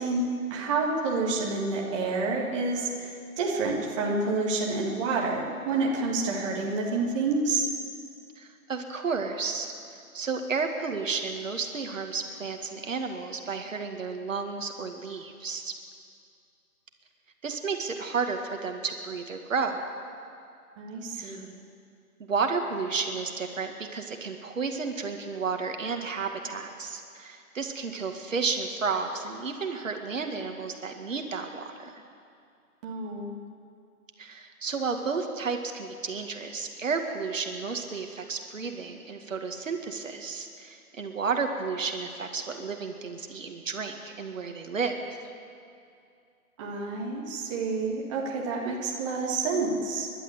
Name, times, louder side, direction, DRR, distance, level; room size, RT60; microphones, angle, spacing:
voice 1, 0.0-7.7 20.8-21.6 32.8-33.3 46.6-50.1, right 3 dB, 20° right, -3 dB, 2.0 m, -29 dB
voice 2, 8.4-9.7 10.1-15.7 17.4-19.8 21.1-21.4 22.2-32.0 34.2-45.0, right 5 dB, 60° right, 4 dB, 2.2 m, -32 dB
30.0 x 12.0 x 8.1 m, 2.4 s
figure-of-eight pair, 155°, 45 cm